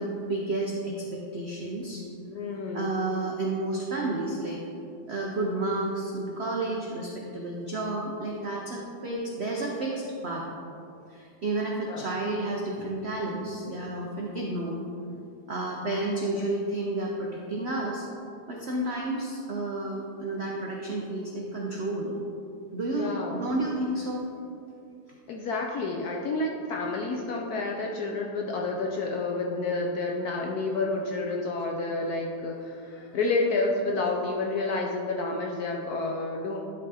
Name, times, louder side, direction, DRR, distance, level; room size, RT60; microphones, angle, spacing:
voice 1, 0.0-2.0 2.7-4.6 5.1-10.4 11.1-14.8 15.5-18.1 18.5-22.1 22.7-24.3, right 2 dB, 80° right, -2 dB, 0.5 m, -31 dB
voice 2, 2.3-2.9 11.9-12.1 22.9-23.4 25.3-36.6, left 3 dB, 70° left, 0 dB, 0.9 m, -29 dB
11.0 x 3.7 x 4.1 m, 2.6 s
omnidirectional pair, 2.1 m